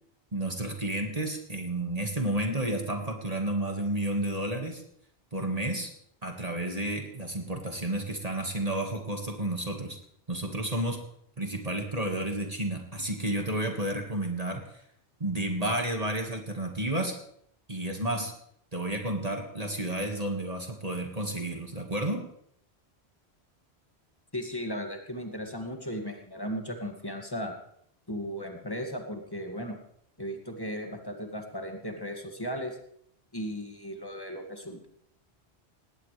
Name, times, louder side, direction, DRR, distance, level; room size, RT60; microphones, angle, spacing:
voice 1, 0.3-4.8 5.3-5.9 6.2-10.0 10.3-11.0 11.4-14.6 15.2-17.2 17.7-18.3 18.7-22.2, right 1 dB, 35° right, 3 dB, 1.9 m, -31 dB
voice 2, 24.3-27.5 28.1-29.8 30.2-32.8 33.3-34.9, equal, 20° left, 2 dB, 2.3 m, -36 dB
19.5 x 17.0 x 3.4 m, 0.70 s
omnidirectional pair, 1.1 m